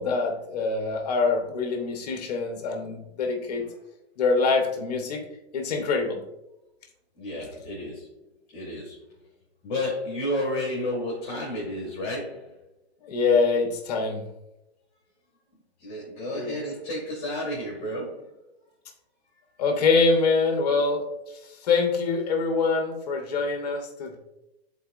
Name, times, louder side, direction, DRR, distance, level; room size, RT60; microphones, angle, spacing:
voice 1, 0.0-3.6 4.2-5.2 5.5-6.2 13.0-14.2 16.3-16.5 19.6-21.0 21.6-24.2, left 4 dB, 40° left, 3 dB, 1.1 m, -24 dB
voice 2, 7.2-8.2 8.5-9.0 9.6-12.5 15.8-18.4, left 1 dB, 20° left, -5 dB, 2.1 m, -31 dB
11.5 x 4.1 x 2.5 m, 0.92 s
hypercardioid pair, 165°, 33 cm